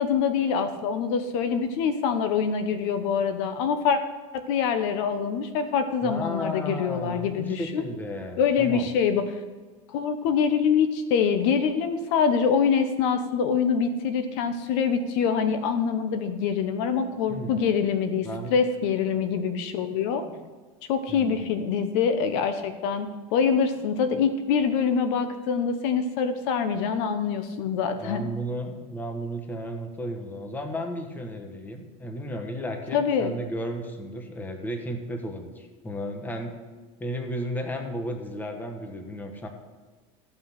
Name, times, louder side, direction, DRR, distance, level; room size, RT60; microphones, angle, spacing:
voice 1, 0.0-4.0 4.3-7.8 8.4-9.2 9.9-20.2 20.9-28.3 32.9-33.3, left 6 dB, 65° left, 9 dB, 1.1 m, -25 dB
voice 2, 6.0-8.9 17.3-17.7 18.2-18.5 20.2-20.5 21.1-21.6 28.0-36.5 37.0-39.5, equal, 10° left, 4 dB, 1.3 m, -34 dB
14.0 x 6.0 x 5.9 m, 1.3 s
supercardioid pair, 140°, 16 cm